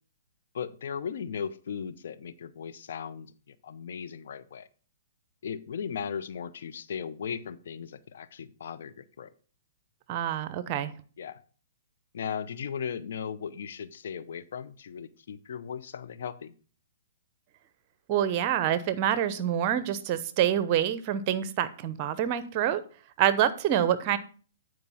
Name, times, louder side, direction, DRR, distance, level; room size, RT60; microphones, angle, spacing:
voice 1, 0.5-4.7 5.4-9.3 11.2-11.4 12.1-16.5, left 7 dB, 65° left, 12 dB, 0.7 m, -37 dB
voice 2, 10.1-10.9 18.1-22.8 23.2-24.2, right 10 dB, 40° right, 15 dB, 0.8 m, -26 dB
9.6 x 4.6 x 5.7 m, 0.40 s
hypercardioid pair, 130°, 0 cm